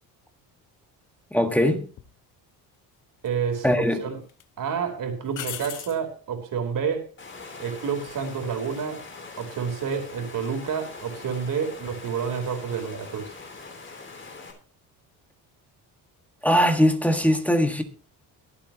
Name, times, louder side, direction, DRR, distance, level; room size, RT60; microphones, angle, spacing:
voice 1, 1.3-1.9 3.6-4.0 16.4-17.8, equal, 5° left, 1.6 m, -21 dB
sound 1, 2.0-2.1 3.2-3.9 4.3-4.4 5.3-6.0 9.1-9.5, left 10 dB, 50° left, 1.1 m, -37 dB
voice 2, 3.2-4.2 4.6-7.1 7.6-9.0 9.4-13.3, right 6 dB, 55° right, 4.1 m, -29 dB
Water, 7.2-14.5, left 4 dB, 30° left, 3.6 m, -42 dB
23.0 x 8.3 x 3.0 m
cardioid pair, 120°, 39 cm